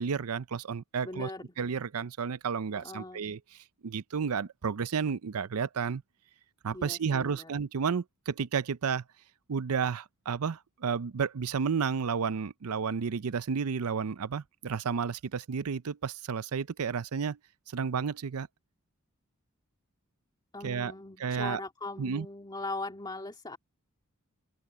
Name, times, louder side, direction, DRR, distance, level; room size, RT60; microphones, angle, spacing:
voice 1, 0.0-1.3 1.6-3.4 3.8-6.0 6.6-9.0 9.5-17.4 17.7-18.5 20.6-20.9 21.2-21.6 22.0-22.3, right 6 dB, 80° right, 0.6 m, -31 dB
voice 2, 1.0-1.5 2.7-3.3 6.7-7.5 20.5-23.6, left 2 dB, 20° left, 2.3 m, -40 dB
open air
head